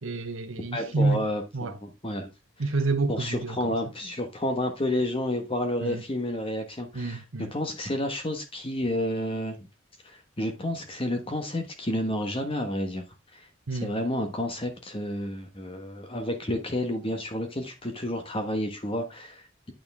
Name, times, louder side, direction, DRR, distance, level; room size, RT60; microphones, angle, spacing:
voice 1, 0.0-1.3 1.5-1.8 2.6-3.6 5.8-6.0 6.9-7.5 13.7-13.9, right 3 dB, 85° right, 0.9 m, -28 dB
voice 2, 0.7-2.3 3.1-9.7 10.0-13.0 13.3-19.7, left 1 dB, 30° left, 1.3 m, -30 dB
9.1 x 6.7 x 3.5 m
head